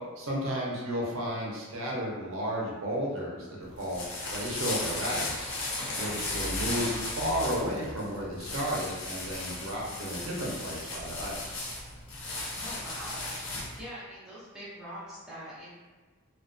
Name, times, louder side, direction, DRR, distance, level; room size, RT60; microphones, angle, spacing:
voice 1, 0.2-5.5 5.9-11.6, equal, 65° right, -3 dB, 0.6 m, -33 dB
sound 1, 3.6-13.8, left 2 dB, 65° left, 0.5 m, -36 dB
voice 2, 6.0-6.4 12.5-13.3 13.8-15.7, equal, 5° right, -9 dB, 0.5 m, -43 dB
2.4 x 2.3 x 2.3 m, 1.3 s
head